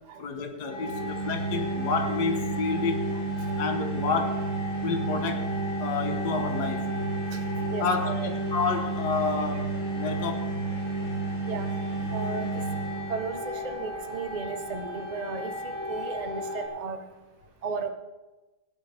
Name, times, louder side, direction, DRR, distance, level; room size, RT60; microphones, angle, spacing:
voice 1, 0.2-3.0 3.6-4.4 4.8-5.5 5.8-6.9 7.8-10.5, left 5 dB, 55° left, 5 dB, 1.7 m, -30 dB
sound 1, 0.7-13.3, right 3 dB, 90° left, 3.7 m, -32 dB
sound 2, 0.7-16.7, left 1 dB, 10° left, 3.3 m, -37 dB
voice 2, 7.7-8.3 11.5-11.7 12.1-12.6 13.1-17.0 17.6-17.9, right 4 dB, 80° right, 6 dB, 0.3 m, -35 dB
17.0 x 10.5 x 3.5 m, 1.1 s
omnidirectional pair, 2.3 m